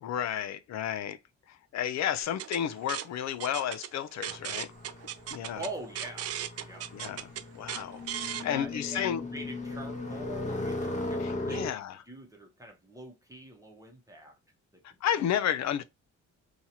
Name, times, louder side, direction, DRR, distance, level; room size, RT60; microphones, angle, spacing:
voice 1, 0.0-1.2 1.5-4.7 5.3-5.6 6.9-9.2 11.2-12.0 14.8-15.8, left 10 dB, 65° left, 0.5 m, -32 dB
sound 1, 2.2-8.4, right 11 dB, 55° right, 0.4 m, -38 dB
sound 2, 4.2-11.7, left 2 dB, 25° left, 0.9 m, -37 dB
voice 2, 5.5-6.9 8.4-14.4 14.7-14.8, right 2 dB, 10° right, 0.9 m, -44 dB
2.9 x 2.4 x 2.7 m
cardioid pair, 90°, 30 cm